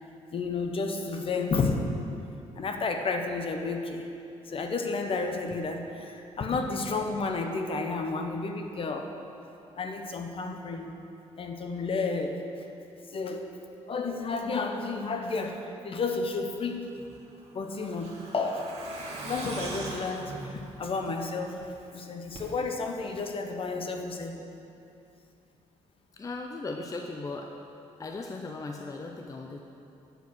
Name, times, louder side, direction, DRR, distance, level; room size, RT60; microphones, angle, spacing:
voice 1, 0.3-1.9 2.6-4.1 4.5-9.1 9.8-10.9 11.4-12.4 13.1-13.5 13.9-16.8 17.5-18.9 19.2-21.6 21.9-24.4, left 3 dB, 45° left, 4 dB, 0.9 m, -31 dB
Truck, 16.9-21.6 21.9-22.0 22.3-22.4, right 2 dB, 55° right, 1.8 m, -41 dB
voice 2, 26.1-27.5 28.0-29.6, left 3 dB, 25° left, 3 dB, 0.6 m, -37 dB
9.2 x 4.7 x 6.2 m, 2.7 s
supercardioid pair, 70°, 13 cm